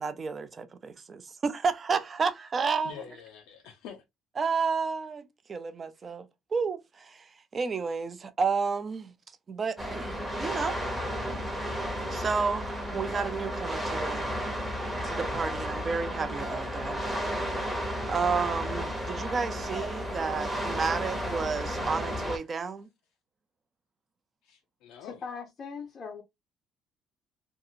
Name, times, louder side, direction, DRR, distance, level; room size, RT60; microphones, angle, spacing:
voice 1, 0.0-3.0 4.4-6.3 6.5-9.1 9.5-10.8 11.6-14.3 15.0-17.0 18.1-22.9, right 5 dB, 25° right, 0.3 m, -31 dB
voice 2, 2.8-4.0 24.4-25.2, left 9 dB, 85° left, 0.5 m, -46 dB
sound 1, 9.8-22.4, equal, 5° right, 0.7 m, -33 dB
voice 3, 25.0-26.2, left 5 dB, 30° left, 0.5 m, -40 dB
2.7 x 2.4 x 2.6 m
cardioid pair, 165°, 0 cm